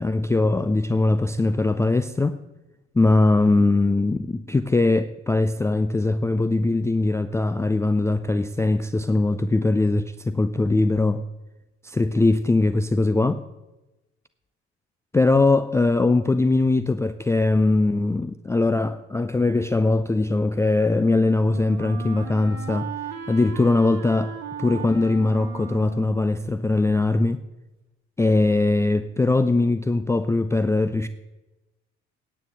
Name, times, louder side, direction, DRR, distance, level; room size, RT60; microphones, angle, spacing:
voice 1, 0.0-2.4 3.0-11.2 11.8-13.4 15.1-22.9 23.3-27.4 28.2-31.1, left 2 dB, 10° left, 0.4 m, -21 dB
Wind instrument woodwind instrument, 20.4-27.3, right 8 dB, 55° right, 1.5 m, -38 dB
9.5 x 7.7 x 7.9 m
figure-of-eight pair, 55°, 33 cm